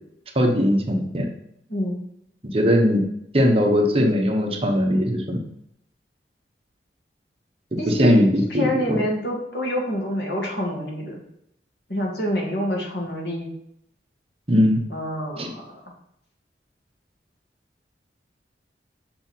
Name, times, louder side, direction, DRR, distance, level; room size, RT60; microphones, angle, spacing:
voice 1, 0.3-1.3 2.5-3.0 3.3-5.4 7.9-9.0 14.5-14.8 15.4-15.5, equal, 30° right, 2 dB, 1.1 m, -19 dB
voice 2, 7.8-8.2 8.5-11.2 11.9-13.5 14.9-15.8, equal, 70° left, -1 dB, 2.2 m, -27 dB
6.8 x 6.1 x 4.5 m, 0.74 s
head